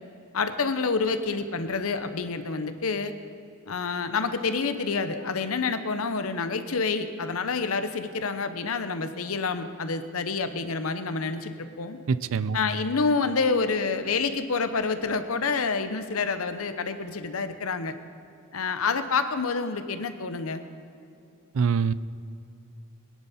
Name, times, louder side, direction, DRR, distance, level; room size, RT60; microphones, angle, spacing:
voice 1, 0.3-3.1 3.7-11.5 11.8-12.0 12.5-17.9 18.5-20.6, left 4 dB, 75° left, 10 dB, 0.8 m, -28 dB
voice 2, 12.1-12.6 21.5-21.9, right 6 dB, 70° right, 16 dB, 0.5 m, -24 dB
21.5 x 10.5 x 4.2 m, 2.6 s
head